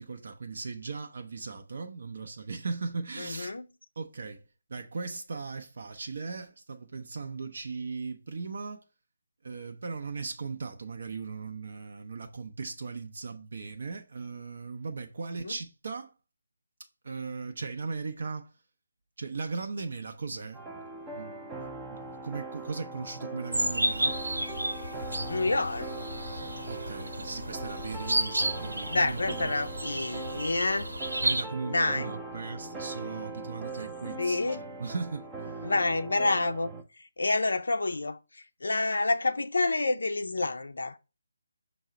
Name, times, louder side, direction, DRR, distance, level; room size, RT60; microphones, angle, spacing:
voice 1, 0.0-3.5 4.0-4.4 4.7-8.8 9.4-16.1 17.0-18.5 19.2-20.6 21.0-21.6 21.8-24.2 26.7-29.5 31.2-35.5, right 4 dB, 55° right, 0.6 m, -38 dB
voice 2, 3.2-3.6 15.3-15.5 25.3-25.9 28.9-30.9 31.7-32.1 34.2-34.6 35.6-36.7 37.0-41.0, left 2 dB, 70° left, 0.4 m, -28 dB
sound 1, 20.5-36.8, right 3 dB, 10° right, 0.5 m, -41 dB
sound 2, 23.5-31.4, right 1 dB, 80° right, 0.9 m, -32 dB
5.4 x 2.0 x 4.8 m
figure-of-eight pair, 155°, 0 cm